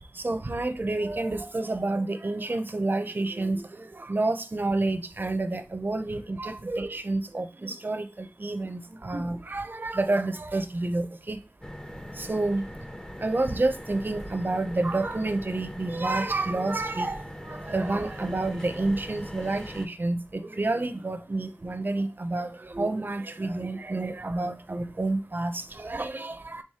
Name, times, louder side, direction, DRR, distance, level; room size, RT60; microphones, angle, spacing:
voice 1, 0.1-11.4 12.1-12.6 13.2-26.6, right 2 dB, 45° right, 0.5 m, -29 dB
sound 1, 11.6-19.9, equal, 15° left, 0.6 m, -41 dB
4.7 x 3.4 x 2.8 m
wide cardioid pair, 50°, 5 cm